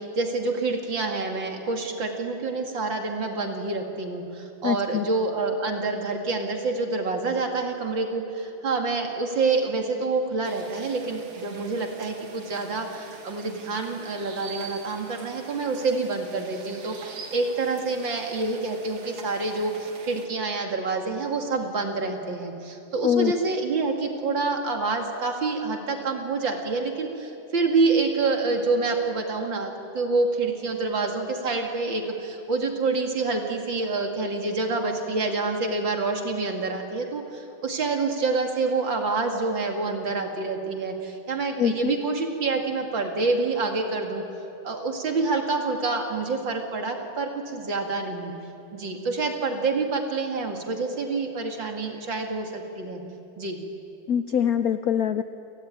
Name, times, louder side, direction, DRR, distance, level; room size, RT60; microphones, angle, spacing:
voice 1, 0.0-44.2 44.6-48.3 48.7-53.0 53.4-53.6, right 3 dB, 60° right, 3 dB, 3.1 m, -27 dB
voice 2, 4.6-5.0 23.0-23.3 41.6-42.0 54.1-55.2, left 9 dB, 70° left, 10 dB, 0.9 m, -23 dB
sound 1, 10.4-20.3, right 5 dB, 85° right, 3.0 m, -44 dB
29.0 x 17.5 x 9.7 m, 2.8 s
omnidirectional pair, 2.4 m